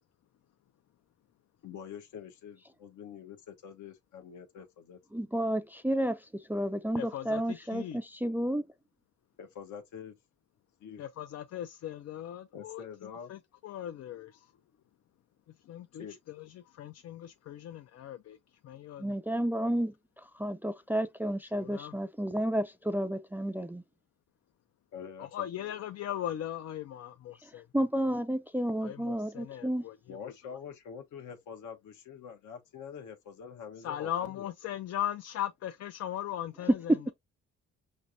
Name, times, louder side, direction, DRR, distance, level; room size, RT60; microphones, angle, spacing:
voice 1, 1.6-5.0 9.4-10.1 10.8-11.0 12.5-13.3 16.0-16.2 24.9-25.7 30.1-34.5, left 7 dB, 75° left, 1.1 m, -45 dB
voice 2, 5.1-8.6 19.0-19.9 20.3-23.8 27.7-29.8 36.9-37.0, right 1 dB, 5° right, 0.3 m, -31 dB
voice 3, 7.0-8.0 11.0-14.4 15.7-18.4 18.6-19.1 21.5-22.0 25.2-27.7 28.8-30.2 33.8-37.1, left 11 dB, 55° left, 0.5 m, -39 dB
5.0 x 3.3 x 2.6 m
cardioid pair, 90°, 30 cm